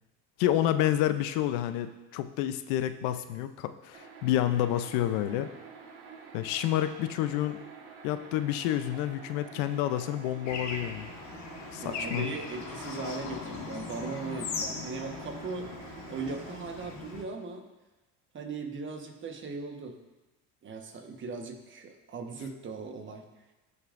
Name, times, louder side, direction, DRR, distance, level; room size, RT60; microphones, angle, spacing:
voice 1, 0.4-5.5 6.3-7.6 8.0-11.1 11.7-12.3, left 12 dB, 80° left, 10 dB, 0.6 m, -29 dB
sound 1, 3.9-16.6, right 5 dB, 85° right, 1.6 m, -48 dB
Bird / Traffic noise roadway noise, 10.5-17.2, left 4 dB, 55° left, 1.4 m, -39 dB
voice 2, 11.8-15.7 16.1-17.6 18.3-20.0 20.6-23.2, right 4 dB, 35° right, 4 dB, 1.3 m, -38 dB
15.5 x 5.5 x 2.6 m, 1.1 s
supercardioid pair, 105°, 34 cm